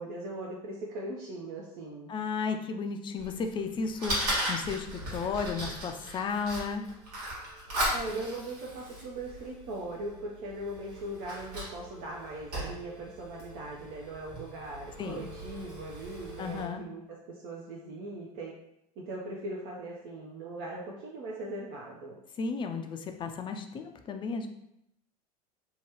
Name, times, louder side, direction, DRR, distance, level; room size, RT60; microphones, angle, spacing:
voice 1, 0.0-2.1 7.9-18.5 19.0-22.2, right 2 dB, 55° right, -2 dB, 0.6 m, -40 dB
voice 2, 2.1-4.2 4.5-6.9 15.0-15.3 16.4-16.9 22.4-24.5, left 5 dB, 25° left, 6 dB, 0.3 m, -33 dB
Fire, 3.2-16.6, equal, 85° right, 1.3 m, -37 dB
2.9 x 2.2 x 2.9 m, 0.79 s
hypercardioid pair, 90°, 20 cm